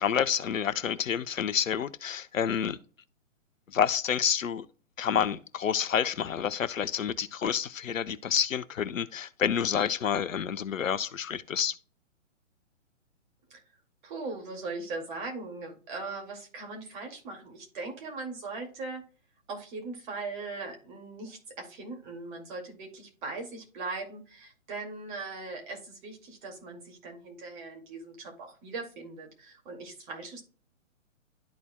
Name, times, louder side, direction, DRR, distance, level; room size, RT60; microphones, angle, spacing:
voice 1, 0.0-2.8 3.7-4.6 5.0-11.8, left 8 dB, 80° left, 0.8 m, -28 dB
voice 2, 14.0-19.0 19.5-30.4, right 3 dB, 40° right, 2.3 m, -39 dB
12.5 x 4.2 x 2.2 m
hypercardioid pair, 135°, 39 cm